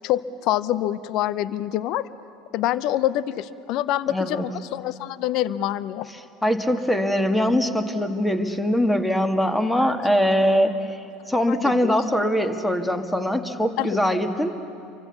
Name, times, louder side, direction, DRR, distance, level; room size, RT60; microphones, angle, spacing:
voice 1, 0.0-2.1 2.5-6.1 11.5-11.9 13.8-14.0, left 13 dB, 55° left, 17 dB, 0.7 m, -26 dB
voice 2, 4.1-4.4 6.4-14.5, equal, 5° left, 7 dB, 2.2 m, -22 dB
29.5 x 24.5 x 7.1 m, 2.5 s
hypercardioid pair, 75°, 0 cm